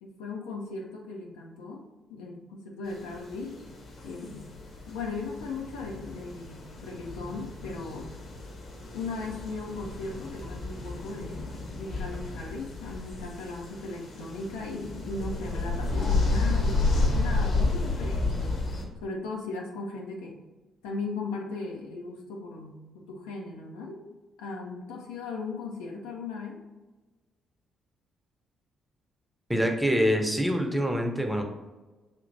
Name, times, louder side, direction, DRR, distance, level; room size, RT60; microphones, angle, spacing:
voice 1, 0.0-3.6 4.0-4.5 4.9-8.2 8.9-18.6 19.0-20.4 20.8-26.6, left 3 dB, 70° left, 0 dB, 0.5 m, -37 dB
sound 1, 2.9-18.8, left 3 dB, 55° left, 0.9 m, -31 dB
voice 2, 29.5-31.4, equal, 5° right, 3 dB, 0.8 m, -25 dB
5.9 x 2.9 x 2.6 m, 1.2 s
figure-of-eight pair, 40°, 0 cm